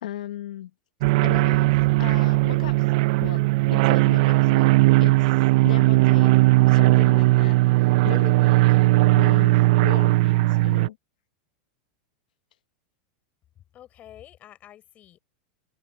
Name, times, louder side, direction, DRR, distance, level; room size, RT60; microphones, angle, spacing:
voice 1, 0.0-0.7 1.2-2.9 3.2-4.7 5.0-6.4 6.7-8.8 9.1-11.0, left 12 dB, 85° left, 1.0 m, -37 dB
sound 1, 1.0-10.9, right 20 dB, 60° right, 0.4 m, -18 dB
voice 2, 13.7-15.2, left 12 dB, 35° left, 6.7 m, -48 dB
open air
supercardioid pair, 125°, 4 cm